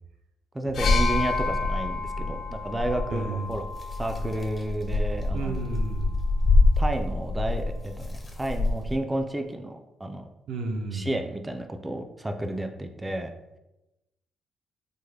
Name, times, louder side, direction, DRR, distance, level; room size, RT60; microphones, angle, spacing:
voice 1, 0.5-3.6 4.0-5.6 6.8-10.3 10.9-13.3, right 1 dB, 15° right, 4 dB, 0.3 m, -31 dB
sound 1, 0.7-4.6 5.6-5.7, left 5 dB, 60° left, 0.3 m, -32 dB
sound 2, 0.8-9.0, left 2 dB, 25° left, 0.6 m, -26 dB
voice 2, 3.1-3.6 5.3-6.2 10.5-11.1, right 3 dB, 85° right, 3 dB, 0.5 m, -32 dB
3.5 x 2.1 x 3.2 m, 0.96 s
cardioid pair, 90°, 0 cm